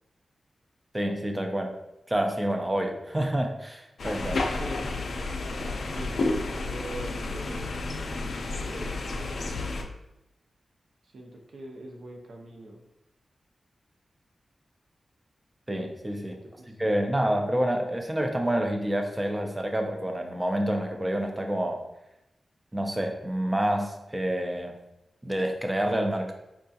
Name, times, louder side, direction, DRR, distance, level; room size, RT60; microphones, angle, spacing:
voice 1, 0.9-1.7 2.1-4.4 15.7-16.4 16.8-21.8 22.7-24.8 25.2-26.3, right 1 dB, 15° right, 3 dB, 0.4 m, -28 dB
sound 1, 4.0-9.8, left 3 dB, 65° left, 0.3 m, -31 dB
voice 2, 4.6-5.0 5.9-7.8 8.6-9.9 11.0-12.8 16.3-16.9, right 1 dB, 70° right, 0 dB, 0.6 m, -43 dB
4.5 x 2.3 x 2.6 m, 0.90 s
wide cardioid pair, 175°, 0 cm